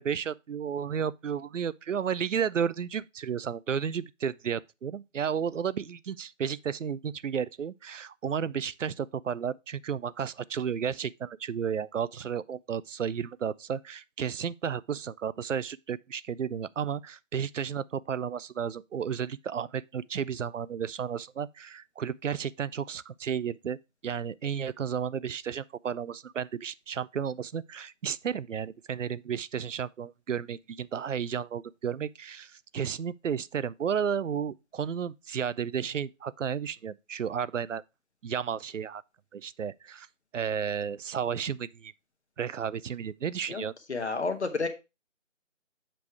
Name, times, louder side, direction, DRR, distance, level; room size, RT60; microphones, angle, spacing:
voice 1, 0.0-23.8 24.0-37.8 38.2-39.0 39.3-40.1 40.3-41.9 42.4-43.7, right 7 dB, 70° right, 0.5 m, -33 dB
voice 2, 43.9-44.7, left 4 dB, 60° left, 1.2 m, -30 dB
7.5 x 3.4 x 4.6 m
figure-of-eight pair, 165°, 39 cm